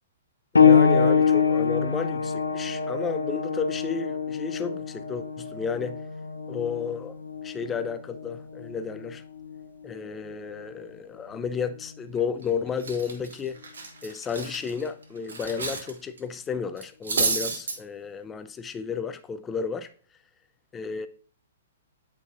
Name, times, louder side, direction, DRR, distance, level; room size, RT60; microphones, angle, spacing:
sound 1, 0.5-10.8 11.7-11.8 12.6-12.7, left 6 dB, 80° left, 0.6 m, -25 dB
voice 1, 0.5-6.0 6.5-7.2 7.4-9.2 9.8-13.6 14.0-19.9 20.7-21.1, left 6 dB, 15° left, 0.4 m, -32 dB
Cutlery silverware, 12.2-12.4 12.8-15.9 16.2-16.4 16.8-17.8, right 4 dB, 65° right, 1.3 m, -30 dB
8.7 x 4.7 x 2.4 m
figure-of-eight pair, 115°, 0 cm